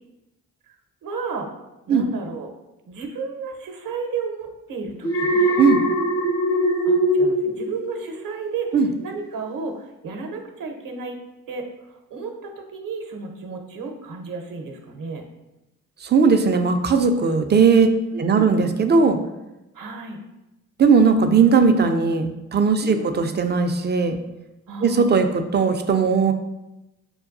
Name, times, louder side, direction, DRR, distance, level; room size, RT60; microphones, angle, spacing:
voice 1, 1.0-1.5 1.9-2.5 2.9-5.5 6.9-8.7 9.0-11.2 11.5-15.3 18.1-18.6 19.7-20.2 22.8-23.2 24.7-25.2, right 4 dB, 55° right, 4 dB, 0.8 m, -33 dB
Alarm, 5.0-8.4 8.7-9.1, equal, 60° left, 0.8 m, -21 dB
voice 2, 16.0-17.9 18.2-19.2 20.8-24.2 24.8-26.3, right 5 dB, 25° right, 7 dB, 0.4 m, -18 dB
6.1 x 2.2 x 2.5 m, 0.97 s
hypercardioid pair, 40°, 40 cm